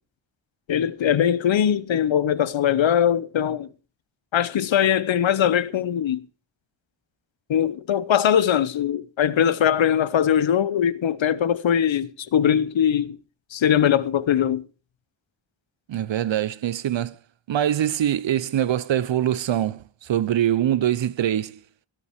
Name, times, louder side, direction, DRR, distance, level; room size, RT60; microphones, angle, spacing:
voice 1, 0.7-3.7 4.3-6.2 7.5-13.2 13.5-14.6, left 9 dB, 80° left, 0.9 m, -21 dB
voice 2, 15.9-17.2 17.5-21.6, right 11 dB, 75° right, 0.7 m, -23 dB
17.0 x 8.6 x 4.6 m
wide cardioid pair, 180°, 45 cm